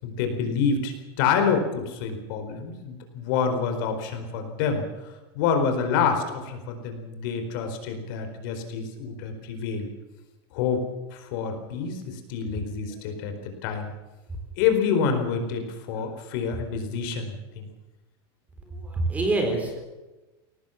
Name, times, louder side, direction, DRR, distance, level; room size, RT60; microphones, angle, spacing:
voice 1, 0.0-4.9 5.3-9.9 10.5-10.8 11.1-13.9 14.6-17.7, left 6 dB, 55° left, 6 dB, 4.4 m, -27 dB
voice 2, 18.7-19.8, right 2 dB, 10° right, 4 dB, 3.9 m, -26 dB
22.0 x 18.5 x 7.3 m, 1.1 s
supercardioid pair, 175°, 13 cm